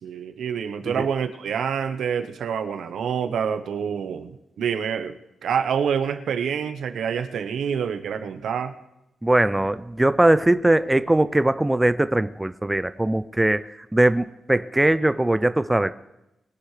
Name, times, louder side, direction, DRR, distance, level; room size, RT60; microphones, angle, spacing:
voice 1, 0.0-8.7, right 7 dB, 85° right, 9 dB, 0.9 m, -27 dB
voice 2, 9.2-13.6 13.9-15.9, right 1 dB, 10° right, 13 dB, 0.4 m, -20 dB
22.0 x 11.5 x 3.2 m, 0.90 s
wide cardioid pair, 145°, 0 cm